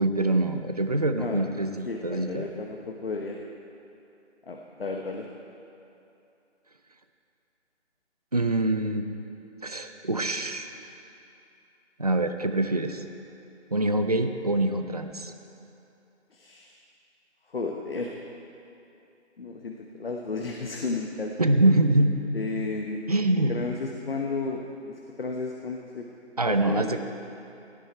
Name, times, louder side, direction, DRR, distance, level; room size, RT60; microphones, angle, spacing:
voice 1, 0.0-2.5 8.3-9.0 9.6-10.7 12.0-13.0 13.7-15.3 21.4-22.1 23.1-23.5 26.4-27.0, right 2 dB, 35° right, 7 dB, 0.5 m, -24 dB
voice 2, 1.8-3.4 4.5-5.3 16.3-16.8 17.5-18.1 19.4-21.6 22.3-23.0 23.5-26.1 26.4-27.0, left 3 dB, 55° left, 1 dB, 1.2 m, -33 dB
17.0 x 12.0 x 4.5 m, 2.7 s
figure-of-eight pair, 170°, 36 cm